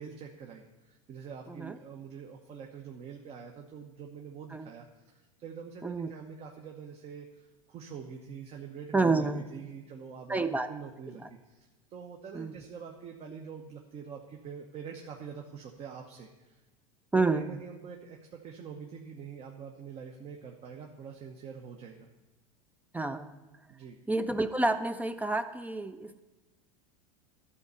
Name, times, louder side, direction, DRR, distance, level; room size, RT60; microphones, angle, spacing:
voice 1, 0.0-9.3 9.5-16.6 17.1-22.1 23.7-24.0, right 6 dB, 35° right, 2 dB, 0.9 m, -45 dB
voice 2, 8.9-9.5 10.3-10.7 11.2-11.3 12.3-12.6 17.1-17.6 22.9-23.4 24.1-26.2, right 3 dB, 10° right, 11 dB, 0.4 m, -29 dB
12.0 x 4.2 x 6.8 m, 1.1 s
hypercardioid pair, 105°, 17 cm